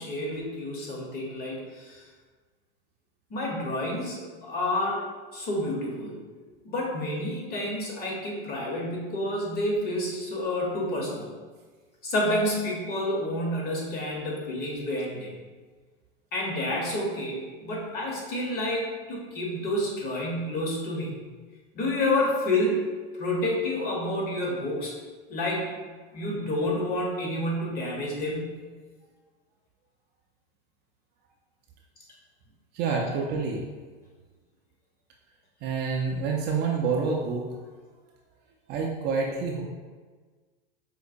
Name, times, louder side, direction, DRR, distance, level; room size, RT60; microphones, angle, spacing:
voice 1, 0.0-2.0 3.3-5.0 5.3-6.2 6.6-11.3 12.0-15.3 16.3-21.3 21.7-22.8 23.2-24.9 25.3-25.8 26.1-28.6, left 1 dB, 30° left, -2 dB, 0.9 m, -29 dB
voice 2, 32.7-33.6 35.6-37.5 38.7-39.6, right 5 dB, 35° right, -1 dB, 0.4 m, -27 dB
4.5 x 2.1 x 2.5 m, 1.4 s
supercardioid pair, 120°, 29 cm